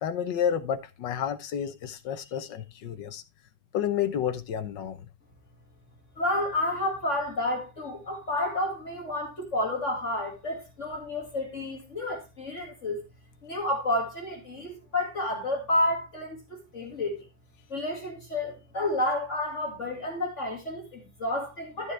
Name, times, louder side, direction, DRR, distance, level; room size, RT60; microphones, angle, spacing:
voice 1, 0.0-3.2 3.7-5.0, left 9 dB, 80° left, 1.7 m, -30 dB
voice 2, 6.2-13.0 13.4-16.4 16.7-17.3 17.7-21.9, left 1 dB, 40° left, 2.6 m, -30 dB
13.0 x 7.0 x 3.3 m
omnidirectional pair, 1.9 m